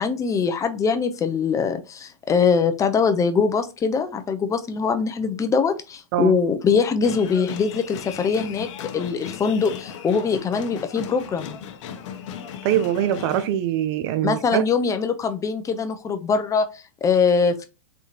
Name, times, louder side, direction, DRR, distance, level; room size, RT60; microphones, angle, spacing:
voice 1, 0.0-8.7 8.9-11.6 14.2-17.7, left 5 dB, 20° left, 0.6 m, -22 dB
sound 1, 7.0-13.5, left 8 dB, 60° left, 0.7 m, -36 dB
voice 2, 12.6-14.7, right 11 dB, 50° right, 0.5 m, -23 dB
3.9 x 3.5 x 2.8 m
hypercardioid pair, 120°, 17 cm